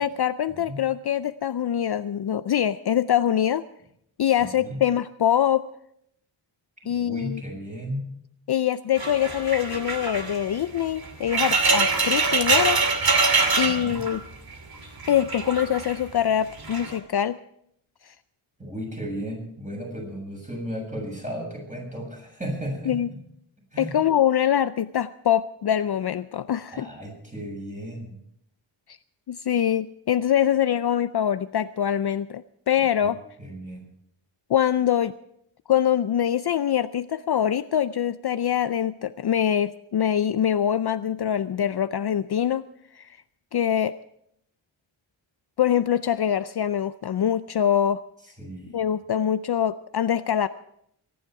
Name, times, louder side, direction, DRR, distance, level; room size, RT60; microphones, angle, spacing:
voice 1, 0.0-3.6 4.2-5.6 6.9-7.4 8.5-12.8 13.6-14.2 15.1-17.4 18.1-18.2 22.9-23.1 23.8-26.9 29.3-33.2 34.5-35.1 35.7-42.6 43.0-43.1 43.5-44.0 45.6-48.0 48.7-50.5, left 10 dB, 55° left, 13 dB, 0.5 m, -24 dB
voice 2, 4.2-4.8 6.8-8.1 13.4-14.0 18.6-23.0 23.7-24.0 26.7-28.2 33.0-33.9 48.4-48.9, equal, 15° right, -1 dB, 7.4 m, -35 dB
sound 1, 9.0-14.5 14.8-16.0 16.6-17.0, right 4 dB, 50° right, 2.5 m, -24 dB
23.5 x 10.5 x 4.7 m, 0.73 s
wide cardioid pair, 115°, 47 cm